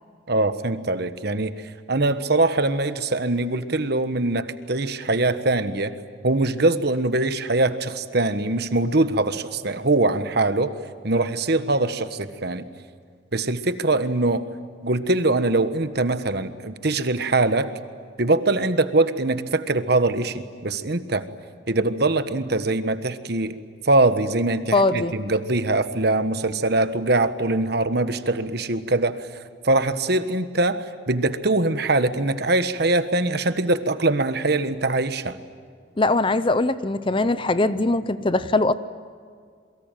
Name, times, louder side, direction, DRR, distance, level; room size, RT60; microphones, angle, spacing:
voice 1, 0.3-6.0 6.2-10.7 11.0-12.7 13.3-14.5 14.8-17.7 18.2-21.3 21.7-23.6 23.8-29.2 29.6-35.4, right 2 dB, 55° right, 11 dB, 1.2 m, -22 dB
voice 2, 24.7-25.2 36.0-38.7, left 2 dB, 25° left, 14 dB, 0.7 m, -21 dB
28.5 x 23.0 x 9.1 m, 2.1 s
head